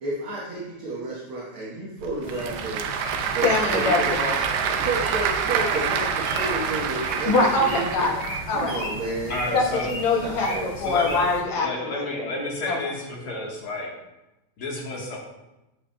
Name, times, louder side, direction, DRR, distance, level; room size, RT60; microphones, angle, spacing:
voice 1, 0.0-3.1 3.3-4.1 4.6-7.9 8.5-9.5 10.2-10.7, right 2 dB, 55° right, -5 dB, 1.7 m, -31 dB
Applause / Crowd, 2.0-8.8, right 7 dB, 90° right, 2.1 m, -27 dB
sound 1, 2.2-11.4, equal, 20° left, 1.3 m, -36 dB
voice 2, 3.4-4.4 7.2-8.8 9.5-12.3 12.7-12.8, left 3 dB, 70° left, -1 dB, 2.4 m, -24 dB
voice 3, 9.3-9.9 10.8-11.2 11.5-13.9 14.6-15.2, left 2 dB, 55° left, -2 dB, 1.9 m, -31 dB
8.5 x 8.0 x 2.2 m, 0.97 s
omnidirectional pair, 3.3 m